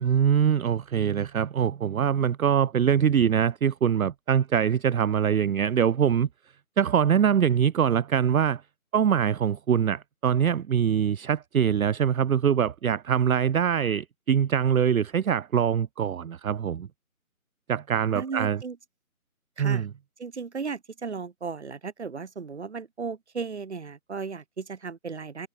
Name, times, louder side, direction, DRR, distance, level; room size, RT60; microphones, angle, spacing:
voice 1, 0.0-6.3 6.8-8.6 8.9-16.9 17.7-18.6 19.6-19.9, right 8 dB, 70° right, 0.6 m, -23 dB
voice 2, 18.1-18.8 19.6-19.9 20.2-25.5, right 5 dB, 50° right, 1.2 m, -35 dB
figure-of-eight pair, 165°, 43 cm